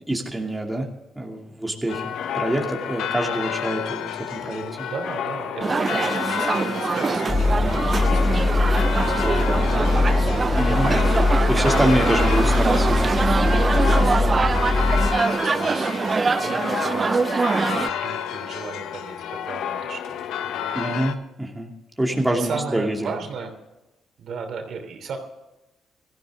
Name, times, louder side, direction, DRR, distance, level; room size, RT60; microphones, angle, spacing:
voice 1, 0.1-0.9 1.2-4.6 10.6-11.0 11.5-13.0 14.0-14.2 20.7-21.7 22.0-23.1, right 1 dB, 10° right, 0 dB, 2.5 m, -25 dB
sound 1, 1.9-21.1, left 9 dB, 85° left, 0.9 m, -30 dB
voice 2, 4.5-11.1 11.5-11.9 12.3-12.4 13.9-20.8 22.3-23.5 24.2-25.2, right 5 dB, 65° right, 5 dB, 2.9 m, -36 dB
sound 2, 5.6-17.9, right 4 dB, 30° right, 0.4 m, -24 dB
sound 3, 7.3-15.1, left 2 dB, 20° left, 2.8 m, -21 dB
17.0 x 14.0 x 3.7 m, 1.0 s
cardioid pair, 90°, 0 cm